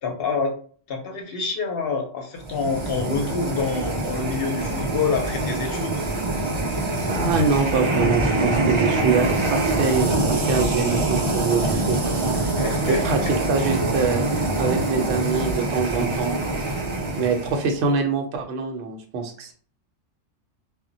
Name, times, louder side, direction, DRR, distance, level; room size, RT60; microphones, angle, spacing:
voice 1, 0.0-0.5 0.9-6.0 12.3-13.3, left 5 dB, 60° left, 3 dB, 0.7 m, -27 dB
sound 1, 2.4-17.8, right 2 dB, 50° right, 0.3 m, -24 dB
voice 2, 7.1-12.0 12.9-13.2 13.5-14.2 14.6-16.3 17.2-19.5, right 4 dB, 70° right, 3 dB, 0.8 m, -24 dB
2.1 x 2.0 x 3.7 m, 0.44 s
omnidirectional pair, 1.3 m